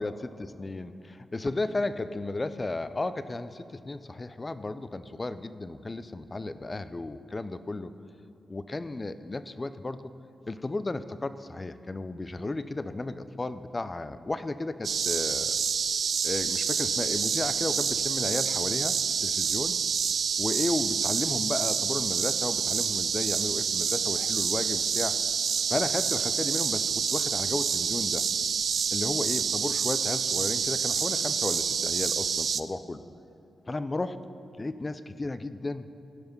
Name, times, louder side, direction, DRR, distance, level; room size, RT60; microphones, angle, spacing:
voice 1, 0.0-0.3 0.6-7.9 8.5-10.1 10.5-15.6 16.2-18.9 19.2-19.8 20.4-25.2 25.7-28.2 28.9-33.0 33.7-34.2 34.6-35.9, left 2 dB, 30° left, 12 dB, 0.5 m, -34 dB
sound 1, 14.8-32.6, right 6 dB, 70° right, 0.3 m, -28 dB
16.0 x 5.7 x 5.3 m, 2.6 s
cardioid pair, 55°, 0 cm